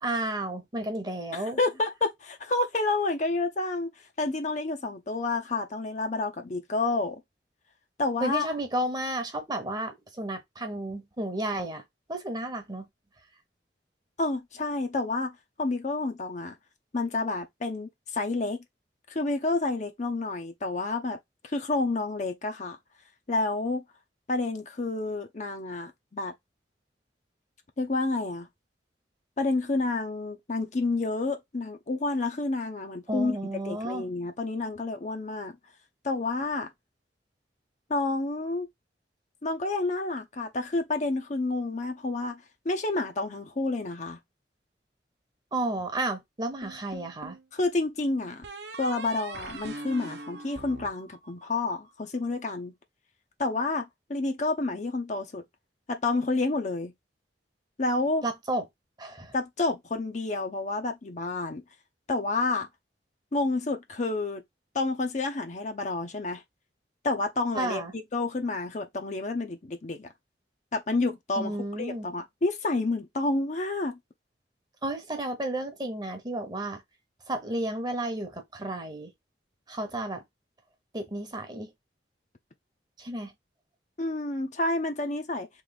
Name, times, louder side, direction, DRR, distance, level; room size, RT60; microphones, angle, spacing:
voice 1, 0.0-1.6 8.2-11.8 12.1-12.9 33.1-34.0 45.5-47.4 58.2-58.6 59.0-59.3 67.5-67.9 71.4-72.1 74.8-76.8 77.3-79.1 79.7-80.2 80.9-81.7 83.0-83.3, right 1 dB, 25° right, 0.9 m, -32 dB
voice 2, 1.3-3.9 4.2-7.2 8.0-8.6 14.2-16.6 16.9-18.6 19.1-21.2 21.4-22.8 23.3-23.8 24.3-26.3 27.8-28.5 29.4-35.5 36.0-36.7 37.9-38.7 39.4-44.2 47.5-48.4 48.8-52.7 53.4-55.4 55.9-56.9 57.8-58.2 59.3-61.6 62.1-62.7 63.3-64.4 64.7-66.4 67.0-67.8 68.1-70.1 70.7-74.0 84.0-85.5, left 3 dB, 40° left, 0.6 m, -29 dB
sound 1, 46.6-47.5 48.4-51.8, right 2 dB, 70° right, 0.9 m, -42 dB
3.2 x 3.0 x 4.0 m
head